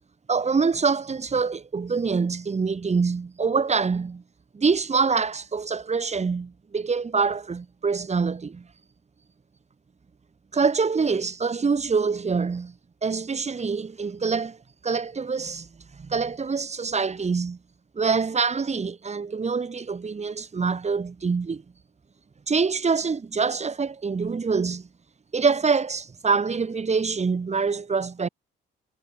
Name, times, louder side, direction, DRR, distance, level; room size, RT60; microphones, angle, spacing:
voice 1, 0.3-4.2 4.5-8.7 10.5-12.7 13.0-14.6 14.8-15.7 16.0-17.6 17.9-21.6 22.5-24.9 25.3-28.3, right 5 dB, 35° right, 7.8 m, -25 dB
cardioid pair, 90°, 20 cm